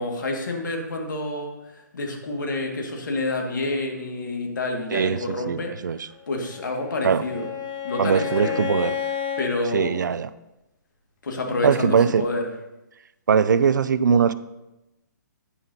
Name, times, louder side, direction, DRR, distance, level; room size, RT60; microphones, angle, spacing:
voice 1, 0.0-1.5 1.9-7.5 7.8-8.6 9.4-10.0 11.2-12.4, left 2 dB, 70° left, 2 dB, 2.1 m, -28 dB
voice 2, 4.9-6.1 7.0-7.2 8.0-8.9 9.7-10.3 11.6-12.2 13.3-14.3, right 6 dB, 70° right, 15 dB, 0.5 m, -21 dB
Bowed string instrument, 6.3-9.5, left 8 dB, 35° left, 1.4 m, -31 dB
10.0 x 9.8 x 2.9 m, 0.96 s
hypercardioid pair, 135°, 10 cm